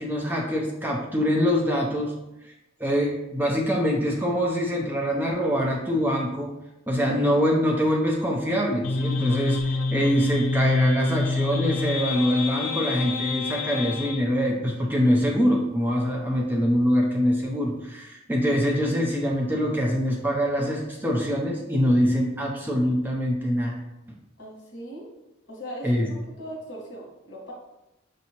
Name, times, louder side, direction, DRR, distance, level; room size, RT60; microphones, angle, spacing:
voice 1, 0.0-2.1 2.4-2.5 2.8-6.5 6.9-23.8 25.8-26.1, equal, 10° right, -1 dB, 0.4 m, -24 dB
sound 1, 8.8-14.2, left 3 dB, 75° left, 0.4 m, -27 dB
voice 2, 24.4-25.1 25.5-27.5, equal, 60° left, -3 dB, 1.3 m, -39 dB
5.1 x 2.7 x 2.8 m, 0.93 s
head